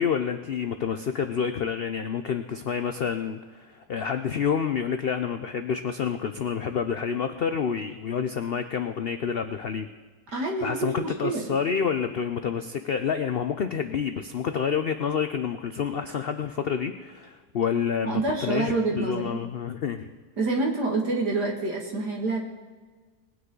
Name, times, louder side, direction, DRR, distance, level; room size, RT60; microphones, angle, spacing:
voice 1, 0.0-9.9 10.3-20.1, left 7 dB, 85° left, 8 dB, 0.5 m, -28 dB
voice 2, 10.3-11.5 18.0-19.4 20.4-22.4, right 3 dB, 75° right, 0 dB, 2.7 m, -27 dB
20.0 x 9.5 x 3.9 m, 1.4 s
omnidirectional pair, 1.8 m